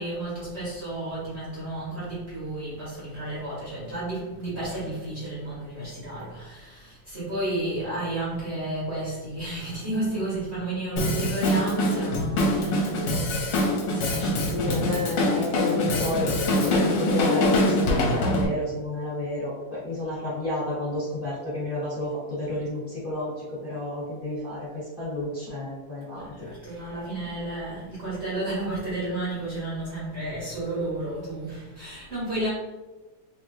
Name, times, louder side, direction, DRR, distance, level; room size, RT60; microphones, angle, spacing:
voice 1, 0.0-13.4 13.8-14.8 26.1-32.5, right 2 dB, 35° right, -8 dB, 1.5 m, -32 dB
Drum kit, 11.0-18.5, left 1 dB, 75° left, 1.5 m, -24 dB
voice 2, 14.0-26.8, left 2 dB, 30° left, -9 dB, 1.2 m, -31 dB
3.4 x 3.3 x 3.2 m, 1.2 s
omnidirectional pair, 2.1 m